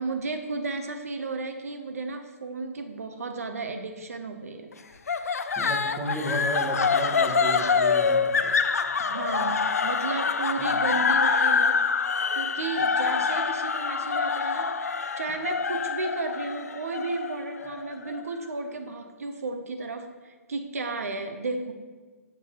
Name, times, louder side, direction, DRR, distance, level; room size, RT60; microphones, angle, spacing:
voice 1, 0.0-4.7 9.0-14.8 15.2-21.7, right 3 dB, 75° right, 6 dB, 0.6 m, -33 dB
sound 1, 5.1-18.2, left 5 dB, 80° left, 0.4 m, -26 dB
voice 2, 5.6-8.6 10.6-10.7, equal, 10° right, -3 dB, 1.2 m, -33 dB
7.3 x 6.0 x 2.9 m, 1.4 s
hypercardioid pair, 140°, 8 cm